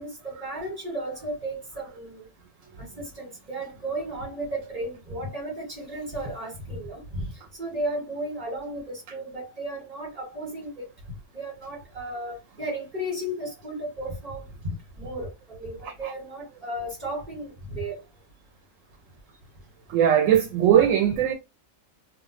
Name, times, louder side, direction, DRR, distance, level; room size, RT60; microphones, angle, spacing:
voice 1, 0.0-2.2 2.8-7.3 7.6-10.9 11.3-18.0, right 1 dB, 35° right, 1.0 m, -34 dB
voice 2, 19.9-21.3, right 10 dB, 70° right, 0.9 m, -19 dB
2.4 x 2.1 x 3.9 m
omnidirectional pair, 1.5 m